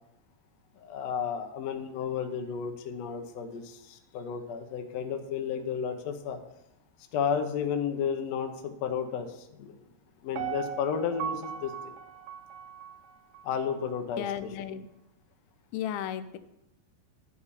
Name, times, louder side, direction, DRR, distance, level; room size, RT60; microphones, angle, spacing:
voice 1, 0.8-6.4 7.1-9.3 9.6-9.8 10.2-11.9 13.4-14.5, left 7 dB, 70° left, 5 dB, 1.6 m, -32 dB
Piano, 10.4-13.4 13.9-14.0, right 9 dB, 90° right, 2.6 m, -38 dB
voice 2, 14.2-14.9 15.7-16.4, left 10 dB, 90° left, 11 dB, 2.5 m, -34 dB
11.0 x 4.8 x 7.0 m, 0.87 s
omnidirectional pair, 4.3 m